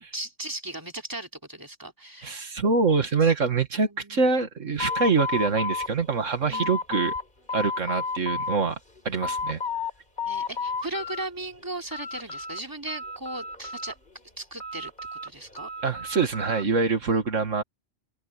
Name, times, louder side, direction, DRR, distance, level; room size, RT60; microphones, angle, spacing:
voice 1, 0.1-2.5 3.2-3.3 3.8-4.2 6.5-6.8 10.3-14.0 14.4-15.7, right 2 dB, 15° right, 3.1 m, -37 dB
voice 2, 2.2-7.1 7.5-8.8 9.0-9.6 15.8-17.6, right 4 dB, 90° right, 2.4 m, -25 dB
sound 1, 4.8-7.2 7.5-8.6 9.0-9.9 10.2-11.3 11.6-12.6 12.9-14.1 14.6-16.7, left 4 dB, 40° left, 4.9 m, -32 dB
omnidirectional pair, 1.3 m